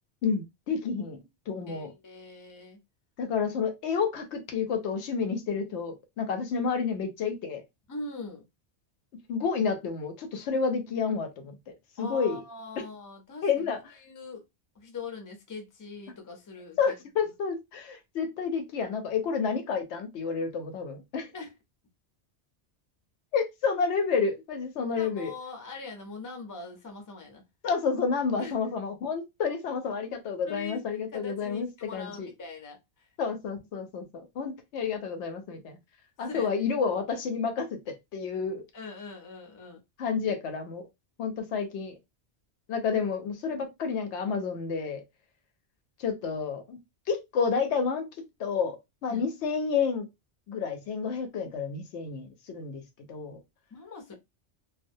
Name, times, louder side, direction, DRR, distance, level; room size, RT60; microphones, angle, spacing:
voice 1, 0.2-1.2 1.5-1.9 3.2-7.6 9.3-11.6 12.0-12.4 13.4-13.8 16.8-21.3 23.3-25.3 27.6-32.3 33.2-35.8 36.2-38.6 40.0-40.9 41.2-42.0 42.7-45.0 46.0-46.8 47.1-48.1 48.4-48.8 49.0-50.1 50.5-52.8 53.1-53.4, left 5 dB, 85° left, 0.9 m, -30 dB
voice 2, 1.7-2.8 7.9-8.4 12.0-13.7 14.0-14.4 14.7-16.8 21.3-21.5 24.9-27.4 28.4-28.5 30.5-33.1 36.3-36.5 38.7-39.8 49.1-49.2 53.7-54.1, left 3 dB, 25° left, 0.5 m, -42 dB
2.3 x 2.1 x 2.6 m
omnidirectional pair, 1.1 m